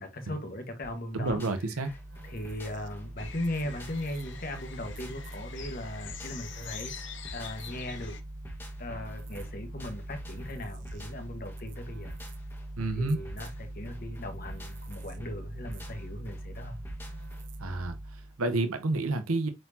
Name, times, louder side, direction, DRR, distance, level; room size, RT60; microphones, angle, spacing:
voice 1, 0.0-1.9 2.2-6.9 7.3-8.1 8.8-12.2 13.0-16.8, left 1 dB, 40° left, 1.4 m, -38 dB
sound 1, 0.8-17.4, left 1 dB, 10° left, 1.4 m, -49 dB
voice 2, 1.1-1.9 12.8-13.2 17.6-19.5, right 2 dB, 85° right, 0.9 m, -30 dB
sound 2, 1.9-18.4, right 1 dB, 55° right, 0.9 m, -42 dB
sound 3, 3.2-8.2, left 8 dB, 55° left, 1.0 m, -45 dB
7.8 x 4.5 x 2.8 m
head